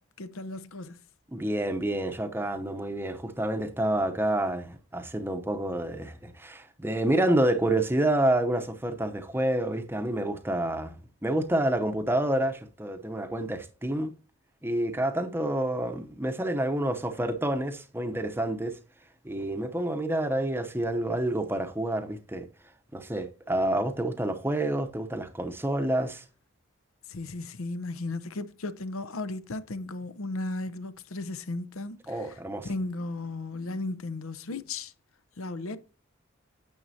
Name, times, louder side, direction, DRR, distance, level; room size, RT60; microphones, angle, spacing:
voice 1, 0.2-1.0 27.1-34.9 35.4-35.8, left 2 dB, 80° left, 0.7 m, -35 dB
voice 2, 1.3-14.1 14.6-18.8 19.2-22.5 22.9-26.2 32.1-32.7, right 1 dB, 10° right, 0.7 m, -28 dB
9.2 x 7.1 x 2.7 m
head